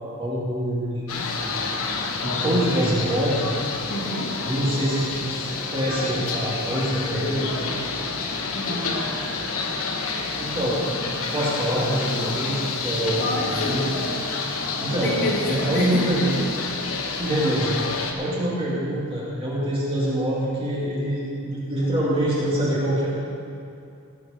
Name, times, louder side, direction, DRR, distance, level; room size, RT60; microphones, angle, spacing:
voice 1, 0.0-1.6 2.2-3.4 4.4-7.7 10.4-13.8 14.8-15.1 15.4-16.4 17.1-23.1, right 1 dB, 25° right, -8 dB, 2.3 m, -25 dB
sound 1, 1.1-18.1, left 4 dB, 75° left, 1.2 m, -29 dB
voice 2, 3.9-4.4 8.5-9.1 13.2-14.3 15.0-16.1, left 1 dB, 60° left, -5 dB, 3.0 m, -29 dB
18.0 x 6.4 x 5.7 m, 2.5 s
head